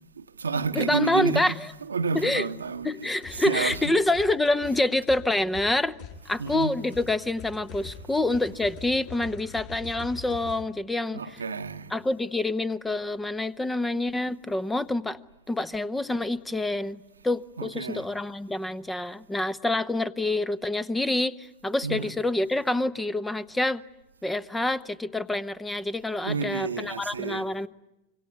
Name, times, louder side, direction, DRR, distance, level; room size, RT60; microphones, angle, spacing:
voice 1, 0.2-1.6 1.9-3.8 6.4-6.7 11.1-11.9 17.6-18.0 21.8-22.1 26.2-27.4, right 5 dB, 75° right, 1.1 m, -30 dB
voice 2, 0.7-1.7 2.1-2.5 2.8-5.9 6.3-11.2 11.9-15.2 15.5-23.8 24.2-27.7, left 2 dB, 10° left, 0.9 m, -27 dB
sound 1, 3.2-3.9 4.1-10.6, left 5 dB, 50° left, 7.4 m, -44 dB
26.5 x 24.0 x 9.3 m
figure-of-eight pair, 90°, 0 cm